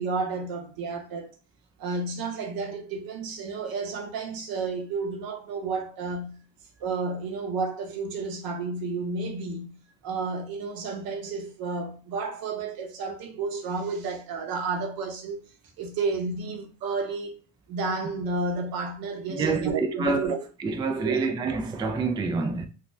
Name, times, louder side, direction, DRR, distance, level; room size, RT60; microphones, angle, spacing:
voice 1, 0.0-1.3 1.8-6.4 6.8-9.8 10.0-15.4 15.8-17.4 17.7-20.4 21.0-21.3, right 4 dB, 65° right, 0.8 m, -31 dB
voice 2, 19.3-20.3 20.6-22.7, right 4 dB, 15° right, 0.3 m, -27 dB
2.5 x 2.2 x 3.1 m
cardioid pair, 95°, 38 cm